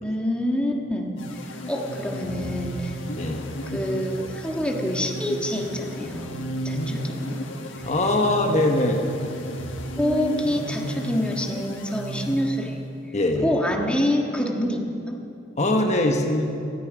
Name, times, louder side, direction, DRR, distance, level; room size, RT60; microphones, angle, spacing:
voice 1, 0.0-1.1 1.7-2.9 3.7-7.5 10.0-12.8 13.4-15.2, equal, 5° left, 0 dB, 1.5 m, -26 dB
sound 1, 1.2-12.9, equal, 90° left, 1.5 m, -33 dB
voice 2, 7.8-9.0 13.1-13.5 15.6-16.5, left 1 dB, 40° left, 3 dB, 1.2 m, -22 dB
16.5 x 13.5 x 5.1 m, 2.6 s
head